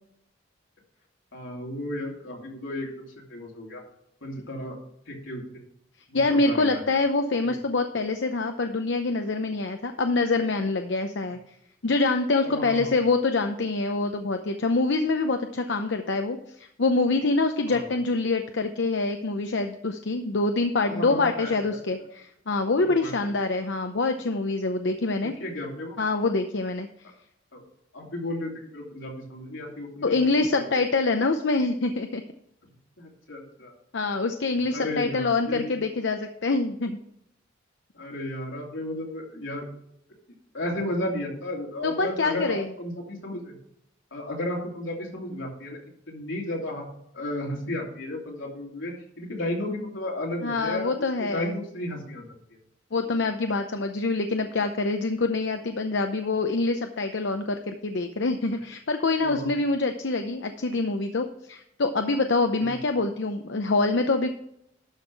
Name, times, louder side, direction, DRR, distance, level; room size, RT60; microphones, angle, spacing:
voice 1, 1.3-3.8 4.2-4.8 5.1-5.6 6.1-6.8 7.4-7.5 11.3-11.4 12.4-12.9 17.7-17.8 20.9-21.8 22.8-23.3 25.4-25.9 27.5-27.6 27.9-30.8 33.0-33.7 34.7-35.7 37.9-39.7 40.5-43.6 44.1-45.8 46.1-46.9 47.1-52.3 59.2-59.5 62.6-62.8, left 1 dB, 85° left, -2 dB, 3.1 m, -34 dB
voice 2, 6.1-11.4 11.8-25.3 26.0-26.9 30.0-32.2 33.9-37.0 41.8-42.7 50.4-51.5 52.9-64.3, left 3 dB, 70° left, 6 dB, 0.7 m, -25 dB
12.0 x 5.6 x 4.7 m, 0.76 s
head